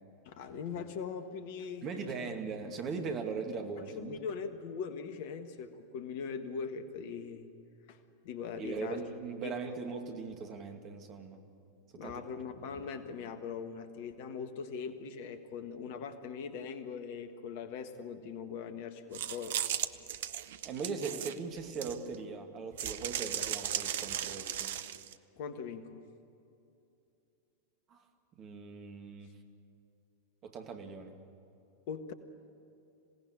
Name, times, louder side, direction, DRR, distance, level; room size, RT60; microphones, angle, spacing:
voice 1, 0.2-2.3 3.8-7.5 7.9-9.0 9.4-9.6 11.9-19.6 25.4-26.0 31.9-32.1, left 6 dB, 50° left, 9 dB, 1.6 m, -41 dB
voice 2, 1.8-4.2 8.6-11.4 11.9-12.2 20.6-24.7 27.9-28.0 28.4-29.3 30.4-31.1, right 4 dB, 35° right, 4 dB, 2.5 m, -39 dB
sound 1, 19.1-22.2 22.8-25.1, right 11 dB, 55° right, 0.8 m, -36 dB
27.0 x 18.0 x 8.7 m, 2.7 s
figure-of-eight pair, 90°, 0 cm